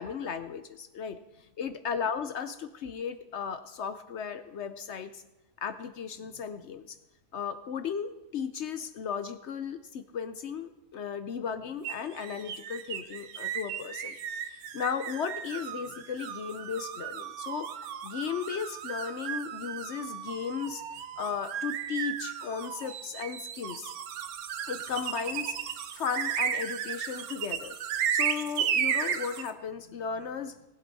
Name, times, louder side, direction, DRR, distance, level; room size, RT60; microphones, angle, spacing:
voice 1, 0.0-5.2 5.6-7.0 7.3-14.1 14.5-20.8 21.2-23.9 24.7-25.6 25.9-27.8 28.1-30.5, left 7 dB, 60° left, 10 dB, 0.7 m, -35 dB
sound 1, 11.8-29.5, right 8 dB, 70° right, 1.2 m, -34 dB
19.5 x 7.9 x 4.1 m, 1.0 s
omnidirectional pair, 1.7 m